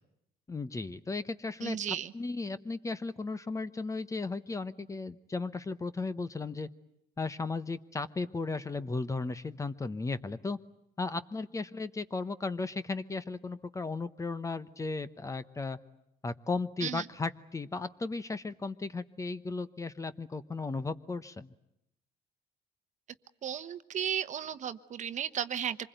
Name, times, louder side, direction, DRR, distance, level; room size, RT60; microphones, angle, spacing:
voice 1, 0.5-1.8 2.1-6.7 7.2-10.6 11.0-15.8 16.2-21.5, left 3 dB, 20° left, 14 dB, 1.0 m, -35 dB
voice 2, 1.6-2.1 16.8-17.0 23.4-25.8, right 9 dB, 50° right, 11 dB, 1.1 m, -34 dB
26.0 x 21.0 x 9.2 m, 0.80 s
cardioid pair, 120°, 16 cm